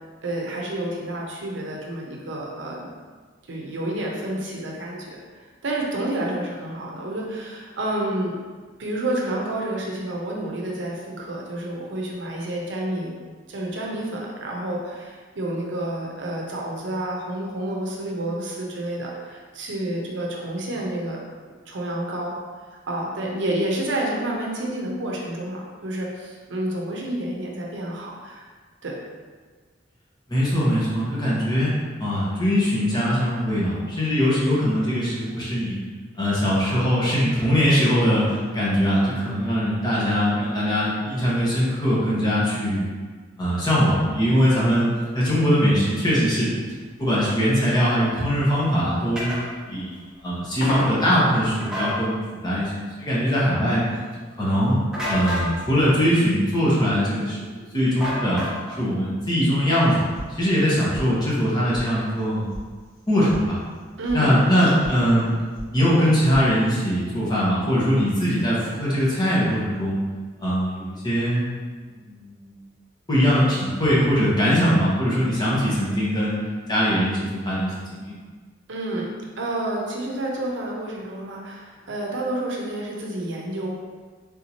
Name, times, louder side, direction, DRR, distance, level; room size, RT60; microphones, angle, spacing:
voice 1, 0.2-2.9 3.5-8.4 8.8-13.1 13.5-21.2 21.7-22.4 22.9-28.5 28.8-29.0 64.0-64.4 64.7-64.8 78.7-79.1 79.4-83.7, right 1 dB, 70° right, -2 dB, 0.6 m, -29 dB
voice 2, 30.3-35.8 36.1-42.9 43.4-44.9 45.1-46.5 47.0-49.3 49.7-52.7 53.0-53.8 54.4-54.8 55.1-58.4 58.8-60.0 60.3-62.5 63.1-63.6 64.1-65.3 65.7-70.0 70.4-71.4 71.9-72.6 73.1-76.4 76.7-78.2, equal, 25° left, -8 dB, 1.0 m, -21 dB
sound 1, 46.7-51.7, equal, 55° left, 0.6 m, -33 dB
sound 2, 49.2-49.4 51.6-52.0 54.9-55.5 58.0-58.8, equal, 5° right, 0.7 m, -28 dB
sound 3, 60.1-60.7 60.9-61.5 61.7-61.8 62.2-62.6 62.9-63.4 63.7-64.2 64.5-65.0 65.2-65.7 66.0-66.5, equal, 85° left, 1.2 m, -37 dB
3.6 x 2.7 x 2.9 m, 1.5 s
head